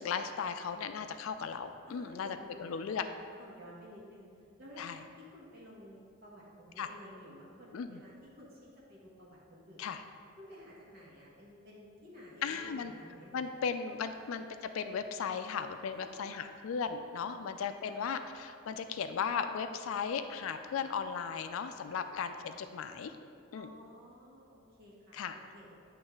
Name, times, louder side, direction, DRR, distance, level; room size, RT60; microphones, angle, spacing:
voice 1, 0.0-3.0 4.8-5.0 6.8-6.9 7.7-8.0 9.8-10.0 12.4-12.9 13.3-23.1 23.5-23.7 25.1-25.4, left 6 dB, 75° left, 9 dB, 0.3 m, -36 dB
voice 2, 1.9-2.9 3.4-9.9 10.4-13.7 13.9-14.2 15.9-16.5 17.2-18.0 21.8-22.4 23.5-25.7, equal, 50° right, -5 dB, 1.6 m, -53 dB
8.8 x 3.2 x 4.7 m, 2.3 s
head